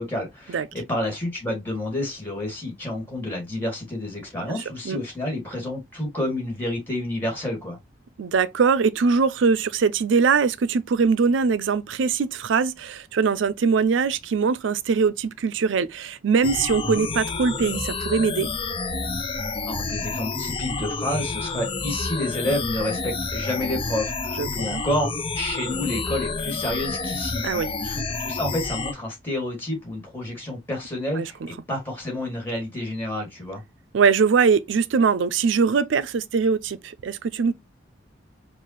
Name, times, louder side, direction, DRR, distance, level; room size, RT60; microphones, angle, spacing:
voice 1, 0.0-7.8 19.6-33.6, left 1 dB, 10° left, 2.0 m, -29 dB
voice 2, 8.2-18.5 24.4-24.8 27.4-27.7 31.2-31.3 33.9-37.5, right 5 dB, 85° right, 0.4 m, -22 dB
sound 1, 16.4-28.9, left 3 dB, 25° left, 0.5 m, -29 dB
4.7 x 2.4 x 3.0 m
head